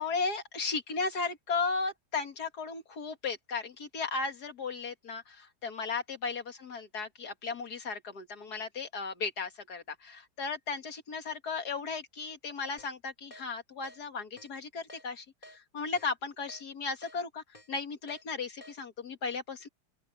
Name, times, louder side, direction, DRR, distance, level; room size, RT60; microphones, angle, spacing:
voice 1, 0.0-15.3 15.5-19.7, left 4 dB, 70° left, 2.3 m, -35 dB
Keyboard (musical), 12.8-12.9 13.3-13.4 13.8-14.0 14.4-14.5 14.9-15.0 15.4-15.6 16.0-16.1 16.5-16.6 17.0-17.2 17.5-17.7 18.1-18.2 18.6-18.7, equal, 25° left, 3.6 m, -51 dB
open air
omnidirectional pair, 1.7 m